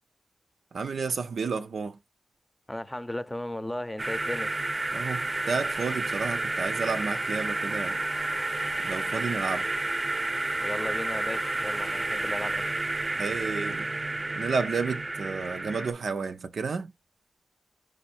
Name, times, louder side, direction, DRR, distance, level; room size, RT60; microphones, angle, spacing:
voice 1, 0.7-2.0 4.9-8.0 8.8-9.7 13.2-13.9 14.4-16.9, right 5 dB, 85° right, 0.5 m, -31 dB
voice 2, 2.7-4.5 10.6-12.7, left 1 dB, 15° left, 0.6 m, -35 dB
sound 1, 4.0-15.9, right 2 dB, 35° right, 0.6 m, -30 dB
4.2 x 2.6 x 4.3 m
cardioid pair, 45°, 0 cm